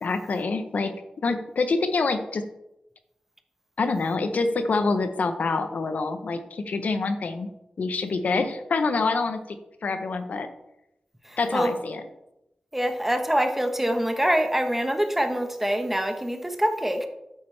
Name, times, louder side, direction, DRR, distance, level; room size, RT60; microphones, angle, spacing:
voice 1, 0.0-0.9 1.2-2.4 3.8-7.5 7.8-9.6 9.8-10.5 11.4-12.0, left 3 dB, 75° left, 8 dB, 0.7 m, -26 dB
voice 2, 11.2-11.7 12.7-17.1, equal, 10° right, 5 dB, 1.0 m, -25 dB
8.6 x 8.4 x 3.3 m, 0.88 s
wide cardioid pair, 115°, 3 cm